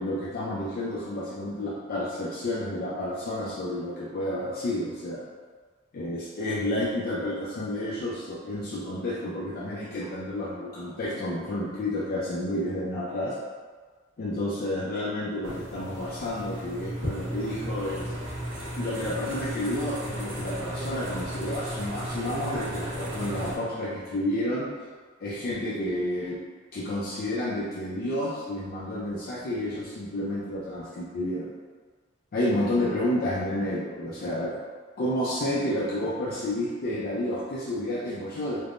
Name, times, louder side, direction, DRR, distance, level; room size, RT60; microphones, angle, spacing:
voice 1, 0.0-5.2 5.9-13.4 14.2-18.1 18.8-24.7 25.2-26.4 26.7-31.5 32.3-34.6 35.0-38.6, left 1 dB, 50° left, -8 dB, 0.4 m, -30 dB
sound 1, 15.4-23.6, equal, 75° right, 0.9 m, -35 dB
3.3 x 2.0 x 2.5 m, 1.5 s
head